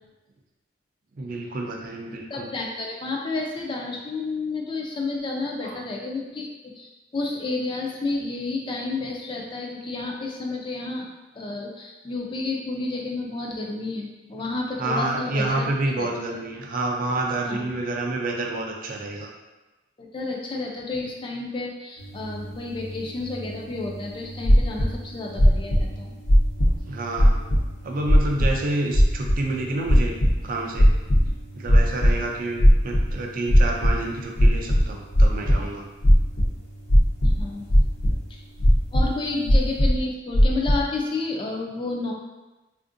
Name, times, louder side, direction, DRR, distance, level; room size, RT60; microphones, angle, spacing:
voice 1, 1.2-2.5 5.6-5.8 14.8-19.3 23.5-23.6 26.9-27.4 27.8-30.1 30.4-30.9 31.5-35.9, right 2 dB, 45° right, 0 dB, 0.4 m, -28 dB
voice 2, 2.3-11.1 11.3-16.1 17.4-17.6 20.0-26.1 37.2-37.6 38.3-38.4 38.9-42.1, left 3 dB, 25° left, -1 dB, 0.3 m, -31 dB
sound 1, 22.0-39.9, right 1 dB, 85° left, 1.0 m, -42 dB
sound 2, 24.4-24.9 25.4-25.8 26.3-26.8 27.2-27.6 28.1-28.5 28.9-29.3 29.9-30.3 30.8-31.3 31.7-32.1 32.6-33.1 33.5-33.9 34.4-35.6 36.0-36.5 36.9-37.4 37.7-38.2 38.6-39.0 39.5-40.0 40.3-40.8, equal, 65° left, 0.6 m, -16 dB
3.5 x 2.5 x 2.5 m, 1.1 s
head